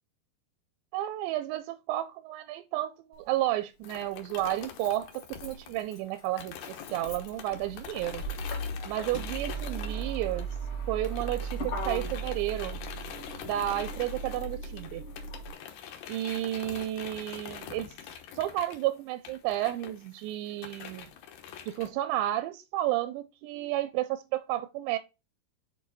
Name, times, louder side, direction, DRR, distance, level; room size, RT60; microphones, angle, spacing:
voice 1, 0.9-8.2 8.9-10.5 10.9-12.8 13.4-15.0 16.1-18.0 18.4-21.1 21.7-25.0, right 14 dB, 85° right, 2.8 m, -32 dB
Motor vehicle (road), 3.1-3.2 4.4-15.5, right 3 dB, 40° left, 2.4 m, -37 dB
sound 1, 3.8-10.8 11.0-21.9, left 9 dB, 70° left, 2.6 m, -45 dB
7.3 x 4.5 x 4.1 m
omnidirectional pair, 5.0 m